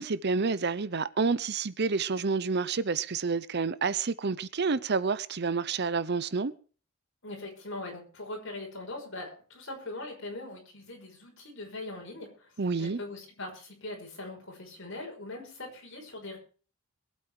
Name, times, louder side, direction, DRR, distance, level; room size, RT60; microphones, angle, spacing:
voice 1, 0.0-6.5 12.6-13.0, right 4 dB, 50° right, 0.7 m, -29 dB
voice 2, 7.2-16.4, left 2 dB, 60° left, 5.8 m, -41 dB
22.0 x 8.5 x 4.8 m
head